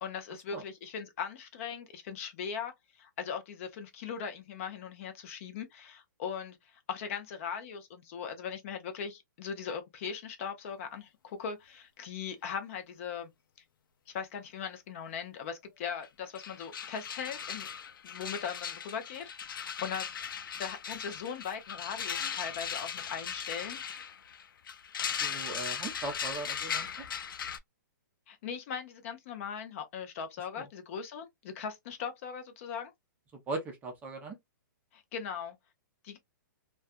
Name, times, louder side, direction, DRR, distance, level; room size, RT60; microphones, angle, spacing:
voice 1, 0.0-13.3 14.1-17.7 18.0-20.1 20.5-23.8 28.3-32.9 34.9-35.6 36.0-36.2, left 7 dB, 40° left, 0.6 m, -39 dB
sound 1, 16.0-16.1 16.3-27.6, left 7 dB, 85° left, 0.4 m, -38 dB
voice 2, 25.2-27.0 30.6-30.7 33.3-34.4, right 3 dB, 15° right, 0.5 m, -39 dB
2.3 x 2.3 x 2.5 m
hypercardioid pair, 155°, 11 cm